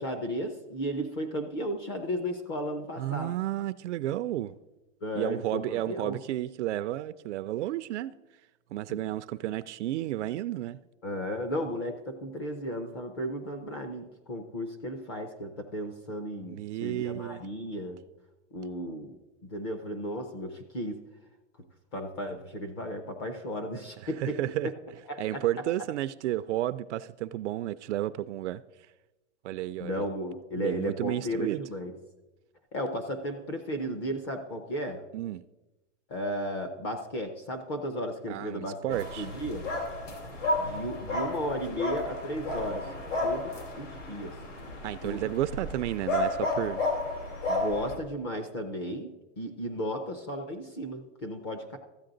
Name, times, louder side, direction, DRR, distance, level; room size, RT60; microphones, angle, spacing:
voice 1, 0.0-3.3 5.0-6.2 8.9-9.0 11.0-18.0 18.5-19.2 19.5-21.0 21.9-24.4 25.1-25.4 29.8-31.9 32.7-35.0 36.1-39.7 40.6-42.9 43.2-44.4 45.0-45.3 47.5-51.8, equal, 20° left, 0.4 m, -34 dB
voice 2, 3.0-4.5 5.2-8.1 8.7-10.8 16.5-17.4 24.0-24.7 25.2-28.6 29.4-30.1 30.6-31.6 35.1-35.4 38.3-39.3 44.8-46.8, right 14 dB, 70° right, 0.5 m, -32 dB
sound 1, 38.9-48.0, left 2 dB, 90° left, 3.0 m, -32 dB
13.5 x 8.3 x 3.9 m
supercardioid pair, 170°, 36 cm